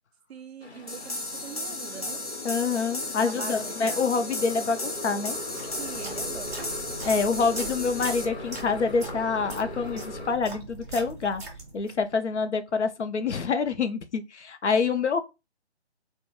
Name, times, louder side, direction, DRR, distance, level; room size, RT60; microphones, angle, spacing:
voice 1, 0.3-2.2 3.2-4.1 5.8-6.8 7.2-7.5, right 7 dB, 70° right, 0.5 m, -42 dB
Motorcycle, 0.6-10.3, left 2 dB, 70° left, 1.0 m, -39 dB
sound 1, 0.9-8.2, left 2 dB, 35° left, 0.4 m, -35 dB
voice 2, 2.4-5.4 7.1-11.4 11.7-15.2, left 5 dB, 90° left, 0.5 m, -26 dB
sound 2, 5.3-12.1, right 2 dB, 15° right, 0.6 m, -41 dB
2.3 x 2.1 x 2.9 m
figure-of-eight pair, 150°, 34 cm